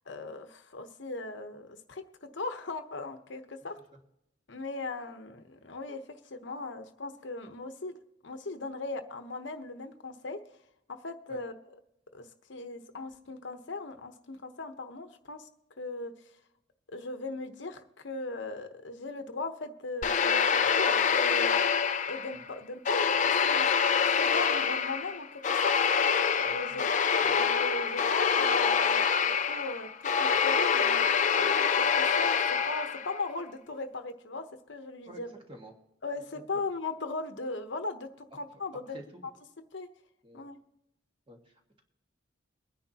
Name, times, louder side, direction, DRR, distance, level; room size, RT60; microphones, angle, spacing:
voice 1, 0.1-3.8 4.5-10.4 10.9-11.5 12.1-15.5 15.8-16.3 16.9-21.5 22.1-23.7 24.2-25.8 26.4-26.8 27.1-32.4 32.7-35.3 36.0-38.8 39.7-39.9 40.3-40.6, left 3 dB, 65° left, 7 dB, 1.0 m, -38 dB
sound 1, 20.0-22.4 22.9-33.2, left 6 dB, 40° left, 0.4 m, -26 dB
voice 2, 38.9-39.3 40.2-40.5 41.3-41.8, equal, 25° right, 1 dB, 1.7 m, -49 dB
23.5 x 9.9 x 2.9 m, 0.86 s
head